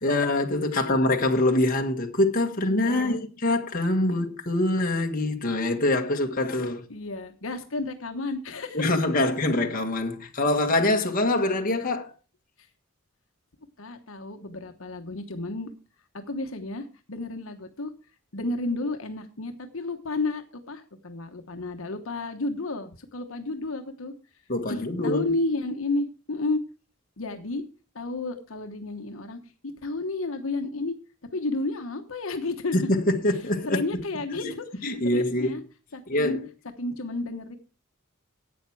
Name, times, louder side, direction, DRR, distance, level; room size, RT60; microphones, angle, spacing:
voice 1, 0.0-6.8 8.7-12.1 24.5-25.3 32.7-34.0 34.4-34.5 34.8-35.6 36.1-36.4, left 2 dB, 45° left, 1.5 m, -24 dB
voice 2, 2.7-3.3 4.1-4.2 6.9-8.9 13.8-15.7 16.1-17.9 18.3-24.1 24.7-26.6 27.2-27.6 27.9-29.4 29.8-30.9 31.3-32.9 33.7-35.6 35.9-36.4 36.8-37.6, left 2 dB, 75° left, 1.1 m, -32 dB
11.5 x 8.7 x 4.7 m
head